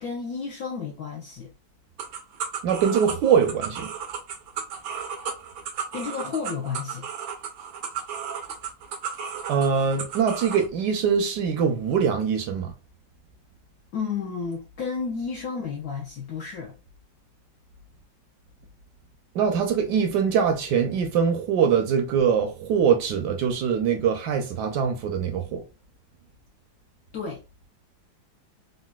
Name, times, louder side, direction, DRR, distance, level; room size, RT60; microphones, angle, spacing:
voice 1, 0.0-1.5 5.9-7.1 13.9-16.8 27.1-27.4, left 5 dB, 75° left, 0.8 m, -32 dB
sound 1, 2.0-10.7, right 7 dB, 90° right, 1.4 m, -34 dB
voice 2, 2.6-3.9 9.5-12.7 19.3-25.6, right 7 dB, 75° right, 1.0 m, -23 dB
3.9 x 2.2 x 2.2 m
omnidirectional pair, 2.1 m